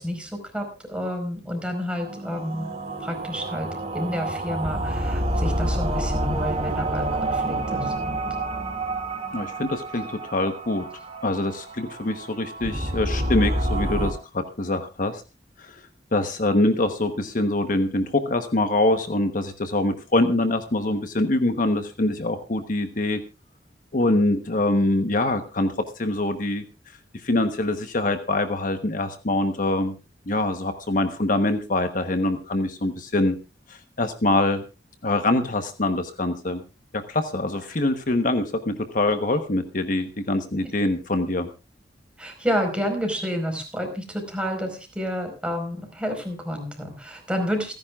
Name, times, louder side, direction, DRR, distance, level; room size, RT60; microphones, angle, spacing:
voice 1, 0.0-2.7 3.0-8.3 42.2-47.8, equal, 5° right, 3 dB, 4.8 m, -30 dB
sound 1, 1.9-14.1, right 1 dB, 35° right, 2.4 m, -28 dB
voice 2, 9.3-10.9 11.2-15.2 15.6-15.8 16.1-23.2 23.9-26.6 27.1-29.9 30.3-33.4 33.7-34.6 35.0-36.6 36.9-41.5, left 2 dB, 50° left, 8 dB, 1.1 m, -24 dB
28.0 x 10.5 x 2.4 m, 0.29 s
head